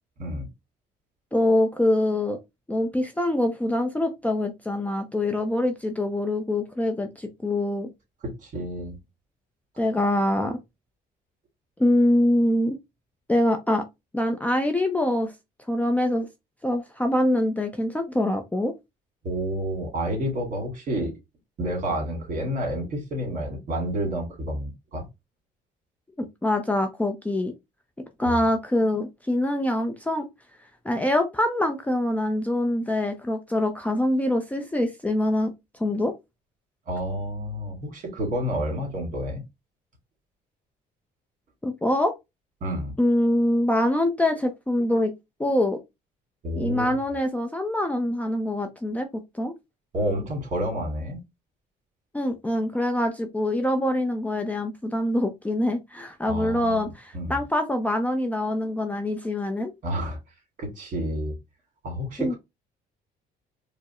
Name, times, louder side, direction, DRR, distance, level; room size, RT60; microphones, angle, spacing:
voice 1, 1.3-2.4 2.7-7.9 9.8-10.6 11.8-12.8 13.3-13.8 14.1-15.3 15.7-16.3 16.6-18.7 26.2-27.5 28.2-30.3 30.8-35.5 35.8-36.1 41.6-42.1 43.0-45.1 45.4-45.8 46.6-49.1 49.3-49.5 52.1-59.7 62.2-62.3, left 1 dB, 10° left, 0.5 m, -24 dB
voice 2, 8.2-9.0 19.2-21.1 21.6-25.1 28.2-28.4 36.9-39.4 42.6-43.0 46.4-47.0 49.9-51.2 56.3-57.4 59.8-60.2 60.6-61.4 61.8-62.4, equal, 50° right, 2.0 m, -29 dB
4.4 x 2.1 x 3.0 m
cardioid pair, 110°, 17 cm